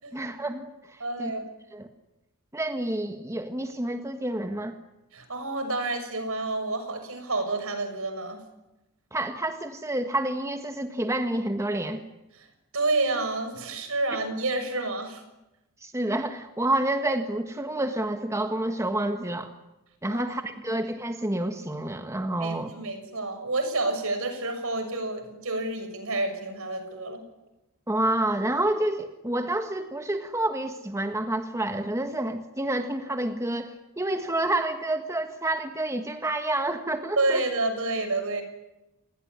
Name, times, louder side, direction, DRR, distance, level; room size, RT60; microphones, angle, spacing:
voice 1, 0.1-1.3 1.7-1.9 2.5-4.8 9.1-12.0 15.8-19.5 20.0-22.7 27.9-37.4, right 1 dB, 15° right, 6 dB, 1.6 m, -29 dB
voice 2, 1.0-1.5 5.1-8.4 12.7-15.2 20.1-20.4 22.4-27.2 37.2-38.4, right 2 dB, 65° right, 8 dB, 6.5 m, -29 dB
28.5 x 20.5 x 9.8 m, 0.96 s
head